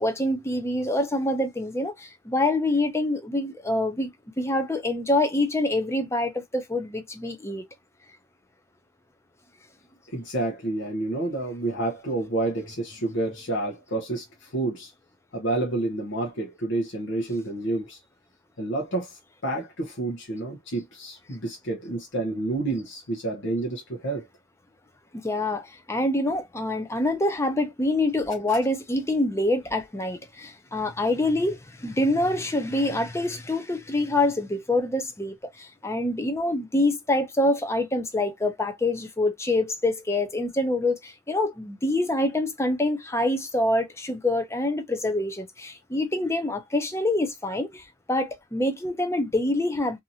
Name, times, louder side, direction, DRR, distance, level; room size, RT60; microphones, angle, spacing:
voice 1, 0.0-4.1 4.4-7.6 25.1-50.0, left 1 dB, 15° left, 0.6 m, -26 dB
voice 2, 10.1-14.9 15.3-18.0 18.6-24.3 28.5-28.6, right 2 dB, 65° left, 0.8 m, -29 dB
2.8 x 2.6 x 2.7 m
head